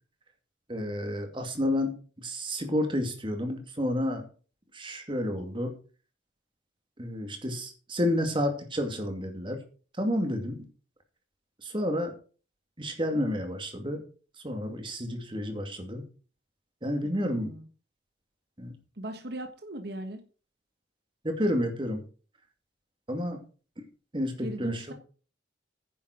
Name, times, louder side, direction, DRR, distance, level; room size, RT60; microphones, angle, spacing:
voice 1, 0.7-4.3 4.7-5.7 7.0-9.6 10.0-10.7 11.6-12.1 12.8-14.0 14.4-16.0 16.8-17.5 18.6-18.7 21.2-22.0 23.1-23.4 23.8-23.9 24.1-24.8, left 1 dB, 25° right, 5 dB, 2.4 m, -30 dB
voice 2, 17.0-17.7 19.0-20.2 24.4-24.9, right 1 dB, 60° right, 6 dB, 1.4 m, -39 dB
10.0 x 7.4 x 6.1 m, 0.38 s
head